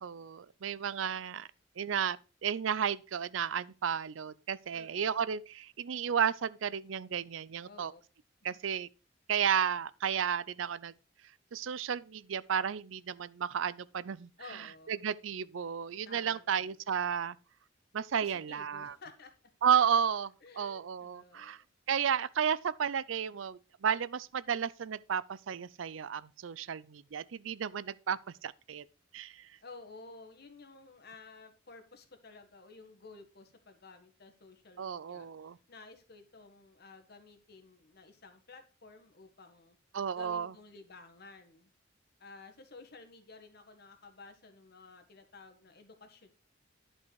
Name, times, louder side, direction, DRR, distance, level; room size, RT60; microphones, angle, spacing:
voice 1, 0.0-1.5 1.8-7.9 8.4-8.9 9.3-10.9 11.5-14.3 14.9-17.4 17.9-18.9 19.6-21.6 21.9-28.8 29.1-29.5 34.8-35.6 39.9-40.5, right 8 dB, 90° right, 0.5 m, -33 dB
voice 2, 4.7-5.1 7.6-8.0 8.5-8.6 14.4-15.0 16.0-16.7 18.2-19.3 20.4-21.7 29.6-39.8 40.1-41.7 42.2-46.3, left 3 dB, 55° left, 1.6 m, -53 dB
11.0 x 5.5 x 4.7 m
head